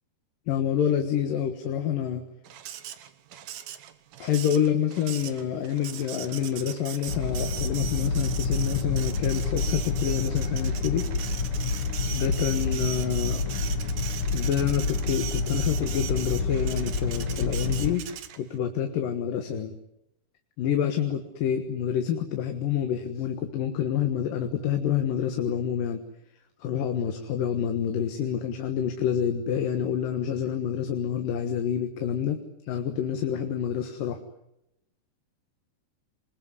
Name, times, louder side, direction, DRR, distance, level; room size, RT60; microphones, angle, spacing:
voice 1, 0.5-2.3 4.2-11.0 12.1-13.4 14.3-18.1 18.4-19.7 20.6-26.0 26.6-32.4 32.7-34.2, left 9 dB, 80° left, 6 dB, 3.2 m, -27 dB
Printer, 2.5-18.6, right 10 dB, 75° right, 2.8 m, -40 dB
sound 1, 7.1-18.0, left 4 dB, 50° left, 2.0 m, -28 dB
26.0 x 22.0 x 9.8 m, 0.86 s
omnidirectional pair, 3.8 m